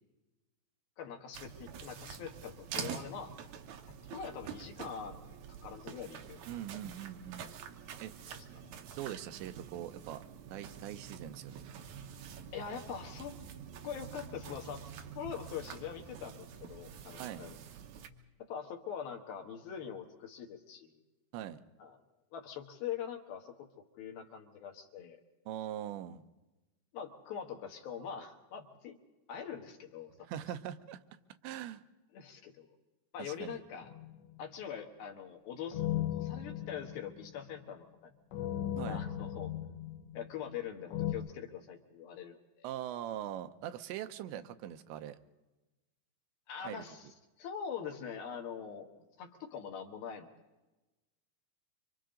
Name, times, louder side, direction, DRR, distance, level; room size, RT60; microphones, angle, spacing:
voice 1, 1.0-3.3 3.9-6.4 8.3-8.7 12.5-13.4 13.8-14.9 15.2-17.6 18.4-21.0 21.8-22.0 22.3-23.7 24.0-25.2 26.9-29.0 29.3-30.3 32.1-32.7 33.1-33.9 34.4-35.8 36.1-38.1 38.9-39.5 40.1-42.7 46.5-47.1 47.4-48.9 49.2-50.3, left 8 dB, 65° left, 4 dB, 2.9 m, -43 dB
sound 1, 1.3-18.1, right 7 dB, 75° right, 1.8 m, -47 dB
voice 2, 6.5-7.5 8.0-8.1 9.0-10.2 10.5-11.6 17.2-17.4 21.3-21.6 25.5-26.2 30.3-31.0 31.4-31.8 33.2-33.6 38.8-39.0 42.6-45.2 46.6-46.9, right 11 dB, 90° right, 10 dB, 3.1 m, -42 dB
sound 2, 33.8-34.4 35.7-37.6 38.3-40.6 40.9-41.1, left 12 dB, 85° left, 3.4 m, -37 dB
27.0 x 25.0 x 3.8 m, 1.1 s
omnidirectional pair, 4.9 m